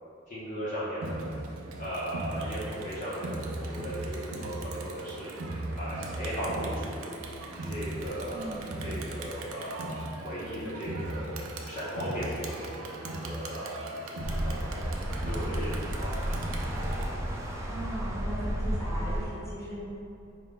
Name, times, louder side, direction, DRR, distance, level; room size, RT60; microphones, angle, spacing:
voice 1, 0.3-1.2 1.8-5.3 5.7-7.1 7.5-10.0 10.2-11.2 11.7-12.5 12.8-14.9 15.2-16.2, equal, 35° left, -9 dB, 0.7 m, -37 dB
Crowd, 1.0-17.0, right 2 dB, 75° right, 0.4 m, -38 dB
voice 2, 8.3-8.7 17.7-19.8, right 1 dB, 15° left, -9 dB, 0.9 m, -38 dB
sound 1, 14.2-19.3, equal, 15° right, 0.3 m, -32 dB
4.8 x 2.2 x 3.7 m, 2.7 s
head